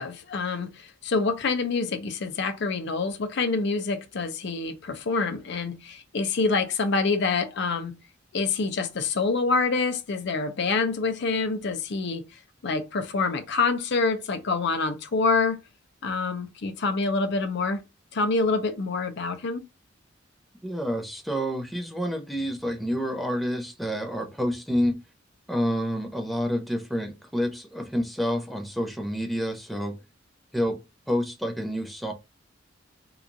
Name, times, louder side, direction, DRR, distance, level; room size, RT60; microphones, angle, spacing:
voice 1, 0.0-8.0 8.3-12.2 12.6-15.6 16.0-17.8 18.1-19.6, left 4 dB, 65° left, 0.5 m, -26 dB
voice 2, 20.6-25.0 25.5-30.0 30.5-30.8 31.1-32.1, equal, ahead, 0.6 m, -28 dB
2.9 x 2.4 x 3.7 m
head